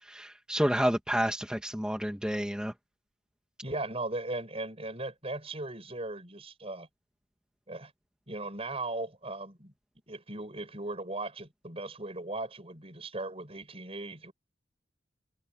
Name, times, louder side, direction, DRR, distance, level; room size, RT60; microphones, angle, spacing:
voice 1, 0.1-2.7, equal, 5° right, 2.2 m, -29 dB
voice 2, 3.6-6.9 7.7-7.9 8.3-9.7 10.1-14.3, right 2 dB, 35° right, 6.7 m, -38 dB
head